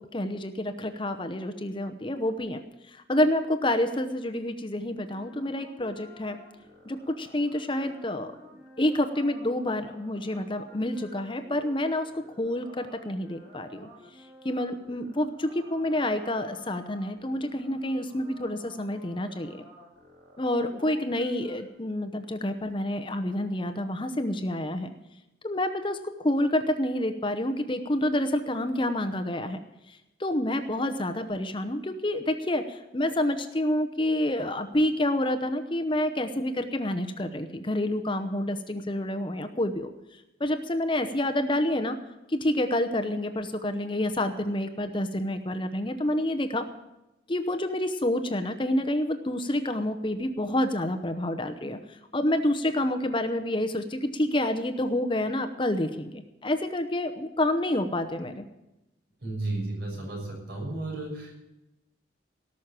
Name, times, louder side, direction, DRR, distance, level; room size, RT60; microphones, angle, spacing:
voice 1, 0.0-2.6 2.9-6.4 6.8-8.3 8.8-13.9 14.4-19.6 20.4-24.9 25.4-29.7 30.2-39.9 40.4-42.0 42.3-46.6 47.3-51.8 52.1-58.4, left 1 dB, 25° left, 8 dB, 0.8 m, -28 dB
sound 1, 5.1-21.7, equal, 35° right, 4.0 m, -51 dB
voice 2, 59.2-61.3, right 2 dB, 60° right, -1 dB, 6.4 m, -33 dB
18.0 x 6.5 x 8.8 m, 0.94 s
head